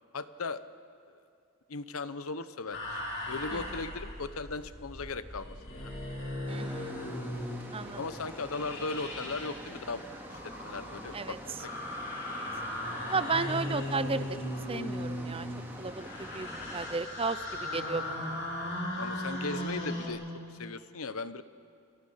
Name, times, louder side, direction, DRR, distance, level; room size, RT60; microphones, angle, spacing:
voice 1, 0.1-0.6 1.1-1.2 1.7-3.0 3.3-5.9 8.0-11.4 19.0-20.2 20.5-21.4, left 3 dB, 80° left, 13 dB, 1.0 m, -37 dB
sound 1, 2.7-20.1, left 1 dB, 60° left, 7.9 m, -38 dB
sound 2, 6.5-17.0, equal, 10° right, 2.9 m, -46 dB
voice 2, 6.5-7.0 7.7-8.0 11.1-11.4 12.2-12.3 13.1-14.3 14.7-15.5 15.8-18.3, right 4 dB, 25° right, 14 dB, 0.6 m, -34 dB
29.5 x 25.0 x 5.8 m, 2.4 s
head